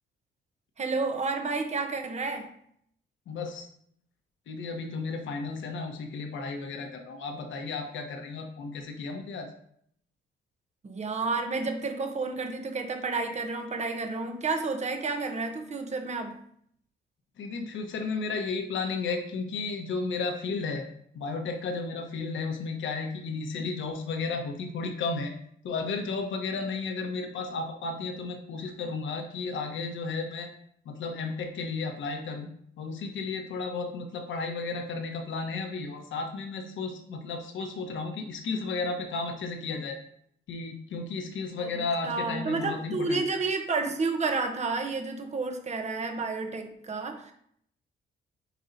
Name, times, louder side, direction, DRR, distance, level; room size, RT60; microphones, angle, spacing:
voice 1, 0.8-2.5 10.8-16.4 41.6-47.3, right 3 dB, 35° right, 5 dB, 1.0 m, -31 dB
voice 2, 3.3-3.7 4.5-9.5 17.4-20.8 21.1-25.3 25.6-30.5 30.8-32.5 32.8-40.0 40.5-43.2, left 4 dB, 75° left, 4 dB, 1.2 m, -33 dB
8.3 x 4.7 x 2.8 m, 0.67 s
cardioid pair, 90°, 20 cm